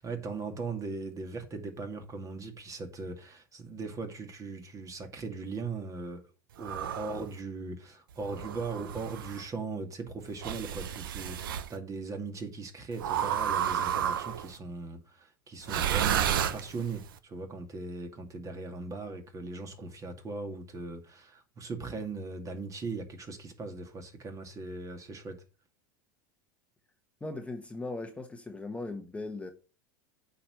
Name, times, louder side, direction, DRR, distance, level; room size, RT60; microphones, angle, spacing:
voice 1, 0.0-6.2 6.6-25.4, right 3 dB, 30° right, 2.4 m, -39 dB
sound 1, 6.6-7.3 8.2-9.4 10.4-11.7 13.0-14.5 15.6-17.0, right 9 dB, 80° right, 0.9 m, -31 dB
voice 2, 27.2-29.5, left 2 dB, 10° left, 1.2 m, -38 dB
8.5 x 5.0 x 5.7 m
hypercardioid pair, 95°, 11 cm